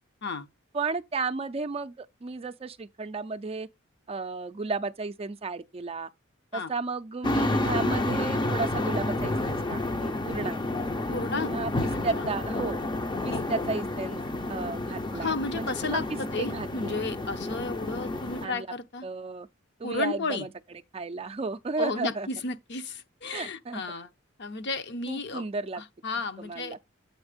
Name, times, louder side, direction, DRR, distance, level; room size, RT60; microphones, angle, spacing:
voice 1, 0.7-3.7 4.1-6.1 6.5-10.6 11.3-12.8 13.2-14.2 14.5-17.0 18.1-18.7 19.0-19.5 19.8-20.5 20.9-22.3 23.3-23.8 25.1-25.8 26.4-26.8, right 3 dB, 30° right, 0.4 m, -33 dB
sound 1, 7.2-18.5, left 2 dB, 25° left, 0.5 m, -30 dB
voice 2, 11.1-11.5 12.2-12.3 13.3-13.4 15.1-19.1 19.8-20.5 21.8-24.1 24.4-25.4 25.7-26.8, left 3 dB, 60° left, 0.8 m, -33 dB
8.0 x 4.3 x 5.0 m
head